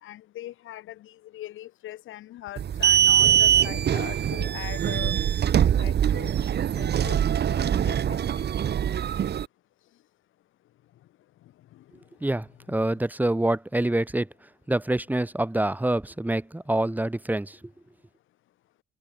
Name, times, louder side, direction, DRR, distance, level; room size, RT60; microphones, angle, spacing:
voice 1, 0.0-5.2 5.8-6.3 6.8-7.2 7.5-8.4 11.7-11.8 12.7-12.8, left 14 dB, 85° left, 3.3 m, -41 dB
sound 1, 2.6-9.4, right 9 dB, 55° right, 1.6 m, -23 dB
voice 2, 12.2-14.3 14.7-17.6, right 1 dB, 10° right, 1.5 m, -26 dB
cardioid pair, 90°, 20 cm